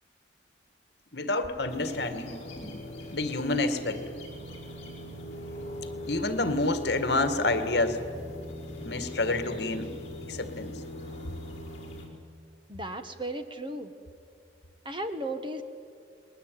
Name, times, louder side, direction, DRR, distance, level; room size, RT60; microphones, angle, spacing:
voice 1, 1.1-2.4 3.1-4.0 6.1-8.0 8.8-9.9 10.3-10.8, left 2 dB, 65° left, 9 dB, 2.0 m, -28 dB
sound 1, 1.7-12.1, left 1 dB, 35° left, 5.2 m, -40 dB
voice 2, 12.7-13.9 14.8-15.6, right 1 dB, 25° right, 7 dB, 1.6 m, -35 dB
30.0 x 20.5 x 9.4 m, 2.3 s
head